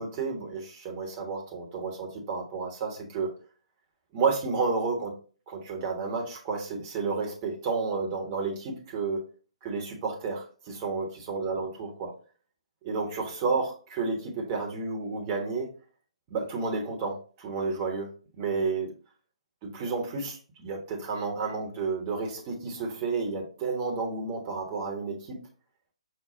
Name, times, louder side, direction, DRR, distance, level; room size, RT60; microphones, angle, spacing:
voice 1, 0.0-3.3 4.1-5.1 5.5-9.2 9.6-12.1 12.8-15.7 16.3-18.1 18.4-18.9 19.7-25.4, right 4 dB, 25° right, 0 dB, 1.1 m, -31 dB
5.6 x 2.2 x 3.8 m, 0.40 s
figure-of-eight pair, 130°, 3 cm